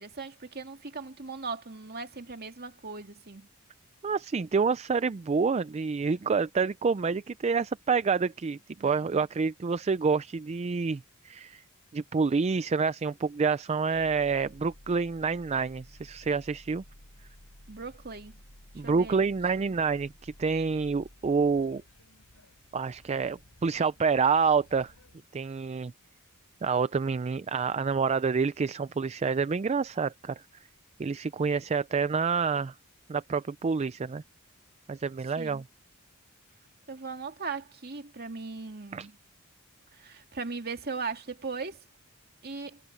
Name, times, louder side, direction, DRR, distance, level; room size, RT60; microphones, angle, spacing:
voice 1, 0.0-3.5 17.7-18.4 18.8-19.2 19.6-19.7 35.4-35.6 36.9-39.2 39.9-41.8 42.4-42.8, right 4 dB, 45° right, 2.4 m, -38 dB
voice 2, 4.0-11.6 11.9-16.8 18.7-21.8 22.7-24.9 25.3-25.9 26.6-30.4 31.0-32.7 33.1-34.2 34.9-35.6 38.9-39.1, right 5 dB, 30° right, 0.4 m, -28 dB
sound 1, 13.9-25.2, left 1 dB, 75° left, 4.6 m, -54 dB
head